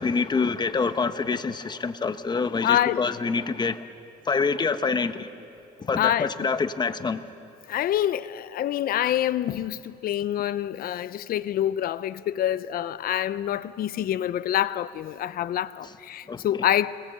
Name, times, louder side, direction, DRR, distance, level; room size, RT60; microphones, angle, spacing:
voice 1, 0.0-3.8 4.2-5.3 5.8-7.3 15.8-15.9 16.3-16.7, left 4 dB, 25° left, 1.0 m, -26 dB
voice 2, 2.6-3.1 6.0-6.3 7.7-17.0, left 11 dB, 60° left, 0.7 m, -26 dB
26.5 x 21.0 x 7.9 m
cardioid pair, 110°, 17 cm